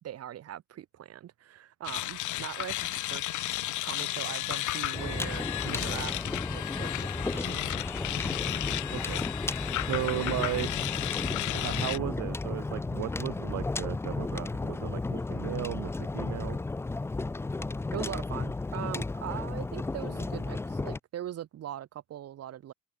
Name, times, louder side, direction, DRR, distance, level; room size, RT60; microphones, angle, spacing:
voice 1, 0.0-6.9 7.2-7.6 17.9-22.7, right 11 dB, 50° right, 4.4 m, -41 dB
sound 1, 1.8-12.0, left 15 dB, 70° left, 3.7 m, -34 dB
sound 2, 4.9-21.0, left 3 dB, 10° left, 0.5 m, -34 dB
voice 2, 8.9-9.2 9.8-11.0 11.5-16.6, right 16 dB, 70° right, 1.5 m, -35 dB
cardioid pair, 160°, 31 cm